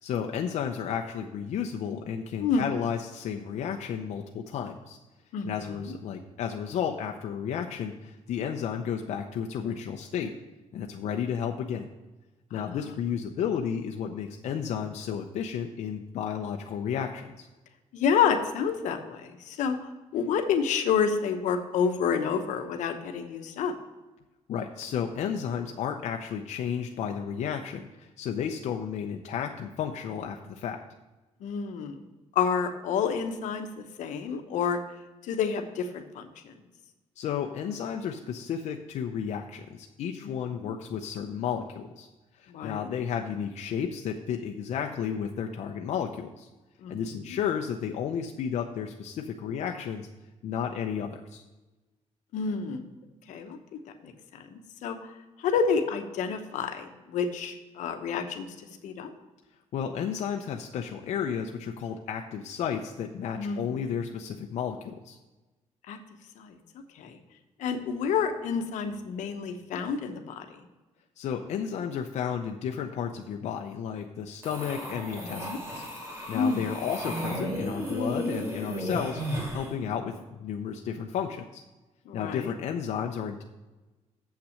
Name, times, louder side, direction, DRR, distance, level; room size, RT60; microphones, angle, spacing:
voice 1, 0.0-5.0 5.4-10.3 10.7-11.9 12.5-17.5 24.5-30.8 37.2-42.1 42.4-46.5 46.9-50.1 50.4-51.4 59.7-65.2 71.2-75.5 75.7-81.6 82.1-83.4, left 8 dB, 65° left, 3 dB, 0.6 m, -32 dB
voice 2, 5.3-5.9 12.5-12.8 17.9-19.8 20.1-23.7 31.4-32.0 32.3-34.8 35.3-36.5 40.2-40.3 42.5-42.8 46.8-47.0 52.3-52.8 53.3-53.6 54.0-54.1 54.5-55.0 55.4-58.5 58.8-59.1 63.3-63.7 65.9-66.0 66.4-66.6 67.0-67.2 67.6-70.5 75.4-75.6 76.3-76.6 82.1-82.5, left 6 dB, 85° left, 6 dB, 1.0 m, -29 dB
sound 1, 74.4-79.7, equal, 20° right, 2.7 m, -34 dB
7.5 x 5.9 x 6.4 m, 1.1 s
cardioid pair, 135°, 12 cm